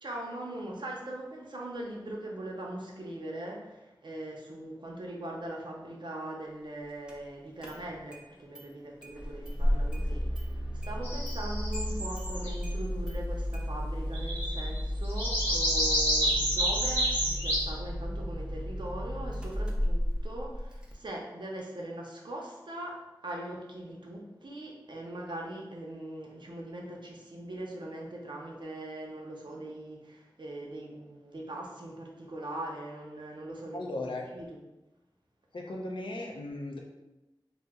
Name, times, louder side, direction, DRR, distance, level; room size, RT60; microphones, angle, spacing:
voice 1, 0.0-10.6 10.8-34.6, right 1 dB, 70° right, -1 dB, 0.6 m, -41 dB
Engine starting, 7.1-7.2 7.6-8.2 8.5-8.6 9.0-20.9, equal, 10° right, 0.5 m, -33 dB
sound 1, 11.0-12.7 14.1-14.8 15.0-17.6, equal, 20° left, 0.9 m, -29 dB
voice 2, 33.7-34.2 35.5-36.8, left 2 dB, 90° left, 0 dB, 0.5 m, -36 dB
2.8 x 2.0 x 3.5 m, 1.0 s
wide cardioid pair, 60°, 8 cm